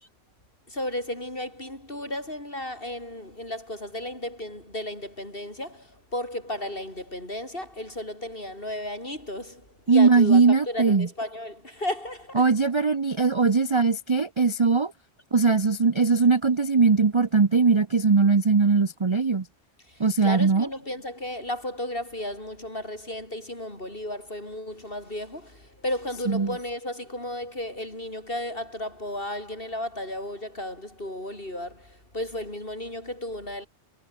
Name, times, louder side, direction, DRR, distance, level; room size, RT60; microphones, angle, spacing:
voice 1, 0.7-12.5 19.9-33.7, left 1 dB, 45° left, 8.3 m, -34 dB
voice 2, 9.9-11.1 12.3-14.9 15.3-19.5 20.0-20.7 26.3-26.6, right 4 dB, 30° right, 0.7 m, -20 dB
omnidirectional pair, 1.3 m